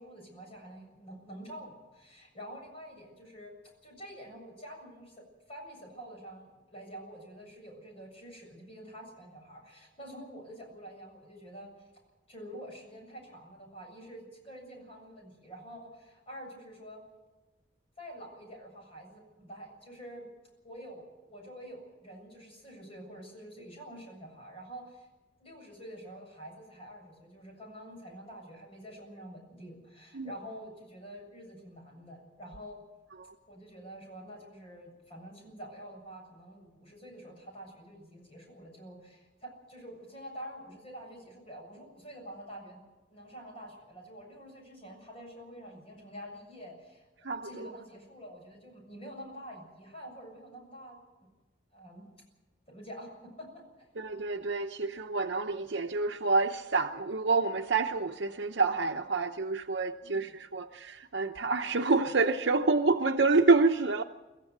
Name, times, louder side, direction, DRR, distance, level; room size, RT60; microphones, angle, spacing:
voice 1, 0.0-5.2 5.5-11.9 12.3-17.0 18.0-20.3 20.6-25.1 25.4-32.8 33.5-42.8 43.1-51.0 51.7-52.1 52.7-53.9 60.0-60.3, equal, 30° left, 7.4 m, -47 dB
voice 2, 54.0-64.0, right 3 dB, 70° right, 0.8 m, -28 dB
24.5 x 15.0 x 7.9 m
head